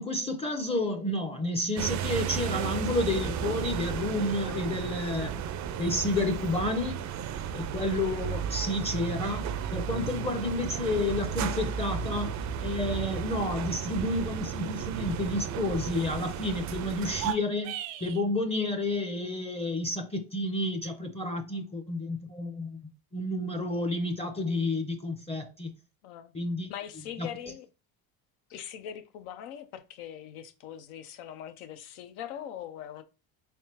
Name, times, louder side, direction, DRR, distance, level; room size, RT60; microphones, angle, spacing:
voice 1, 0.0-5.4 5.8-7.0 7.5-17.8 18.0-22.8 23.1-25.7 26.3-26.7 27.2-27.3, left 2 dB, 15° left, 0.5 m, -30 dB
sound 1, 1.8-17.3, right 8 dB, 45° right, 0.4 m, -34 dB
sound 2, 17.1-18.2, right 14 dB, 85° right, 0.7 m, -35 dB
voice 2, 26.0-26.3 26.7-27.7 28.5-33.0, left 10 dB, 90° left, 0.7 m, -41 dB
3.4 x 3.3 x 2.9 m
supercardioid pair, 95°, 43 cm